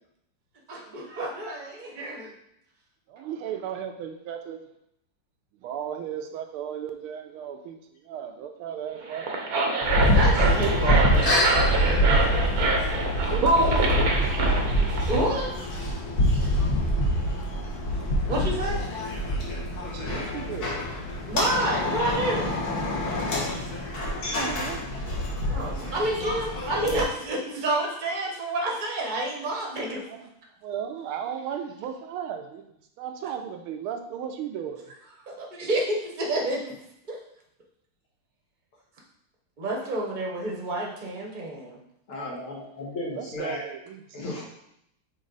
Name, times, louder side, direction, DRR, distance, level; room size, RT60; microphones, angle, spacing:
voice 1, 0.7-2.3 10.1-12.5 15.1-15.5 15.8-15.9 18.3-19.0 21.3-22.5 23.2-23.3 25.5-30.1 35.3-36.7 37.1-37.2 39.6-41.8, right 1 dB, 30° right, -1 dB, 0.9 m, -29 dB
voice 2, 3.1-4.7 5.5-9.5 13.2-13.9 19.8-20.8 23.9-24.8 30.1-30.2 30.6-32.6 33.0-34.9 43.1-44.3, right 9 dB, 85° right, 6 dB, 1.5 m, -36 dB
sound 1, 9.0-15.2, right 3 dB, 60° right, 1.1 m, -25 dB
sound 2, 9.8-27.0, equal, 50° left, 1.5 m, -25 dB
voice 3, 42.1-43.6 44.1-44.4, left 2 dB, 80° left, -3 dB, 2.5 m, -34 dB
6.4 x 4.0 x 3.9 m, 0.76 s
omnidirectional pair, 2.3 m